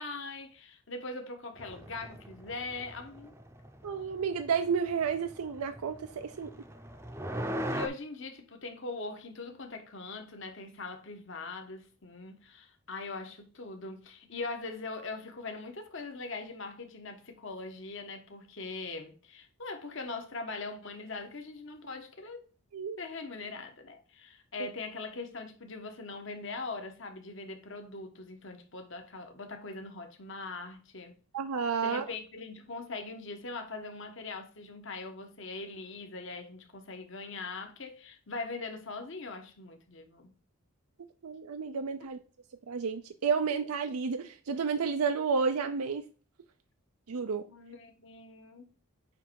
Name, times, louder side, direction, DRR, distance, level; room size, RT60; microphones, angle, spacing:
voice 1, 0.0-3.3 7.7-22.4 23.0-31.1 31.8-40.3 47.4-48.7, left 3 dB, 60° left, 1.3 m, -41 dB
sound 1, 1.6-7.9, equal, 10° right, 0.6 m, -40 dB
voice 2, 3.8-6.0 6.2-6.5 22.7-23.0 31.3-32.0 41.2-42.2 42.7-46.0 47.1-47.4, right 5 dB, 90° right, 0.5 m, -31 dB
9.3 x 3.3 x 4.6 m
head